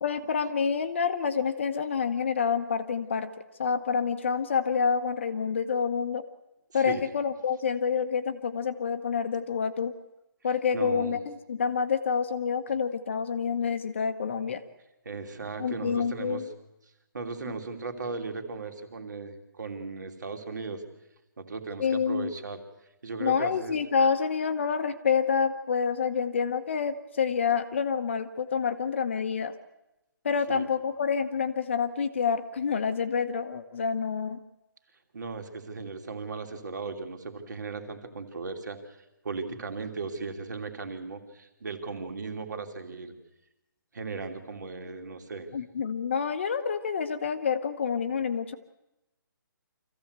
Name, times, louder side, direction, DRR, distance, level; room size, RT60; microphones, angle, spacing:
voice 1, 0.0-3.3 3.6-6.2 6.7-9.9 10.4-14.6 15.6-16.5 21.8-22.3 23.2-29.5 30.2-34.4 45.5-48.5, left 6 dB, 35° left, 9 dB, 1.0 m, -28 dB
voice 2, 6.7-7.0 10.7-11.2 15.0-16.4 17.1-20.8 21.4-22.6 23.0-23.8 30.5-30.7 35.1-39.0 39.2-43.1 43.9-45.5, right 4 dB, 55° right, 6 dB, 2.9 m, -37 dB
25.5 x 15.0 x 8.1 m, 0.95 s
hypercardioid pair, 175°, 12 cm